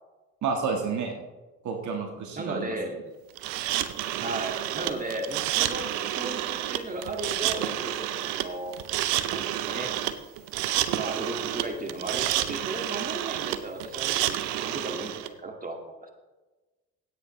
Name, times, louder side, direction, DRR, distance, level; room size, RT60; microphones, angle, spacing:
voice 1, 0.4-1.2 1.6-2.7, right 5 dB, 60° right, 2 dB, 1.7 m, -30 dB
voice 2, 2.4-3.0 4.2-8.7 9.3-10.0 10.9-16.1, right 2 dB, 25° right, 3 dB, 2.2 m, -35 dB
sound 1, 3.4-15.3, right 13 dB, 85° right, 0.7 m, -29 dB
16.0 x 9.0 x 3.3 m, 1.2 s
hypercardioid pair, 60°, 32 cm